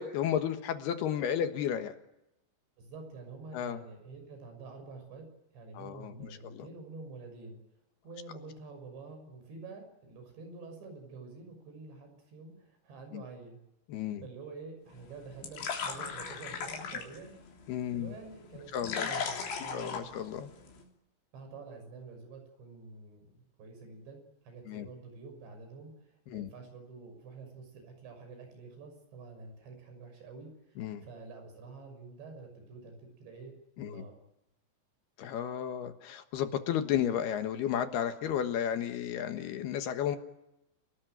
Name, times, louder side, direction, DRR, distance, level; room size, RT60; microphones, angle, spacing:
voice 1, 0.0-2.0 3.5-3.8 5.7-6.7 13.1-13.2 13.9-14.2 17.7-18.1 18.7-19.1 19.6-20.5 24.7-24.9 26.3-26.5 30.8-31.0 33.8-34.0 35.2-40.2, left 9 dB, 70° left, 8 dB, 3.2 m, -33 dB
voice 2, 2.8-5.3 5.5-7.6 8.0-13.6 14.2-17.3 17.9-20.1 21.3-34.1, right 4 dB, 80° right, 5 dB, 8.5 m, -48 dB
sound 1, 14.9-20.9, left 6 dB, 85° left, 5.7 m, -39 dB
30.0 x 18.5 x 9.3 m, 0.89 s
omnidirectional pair, 5.0 m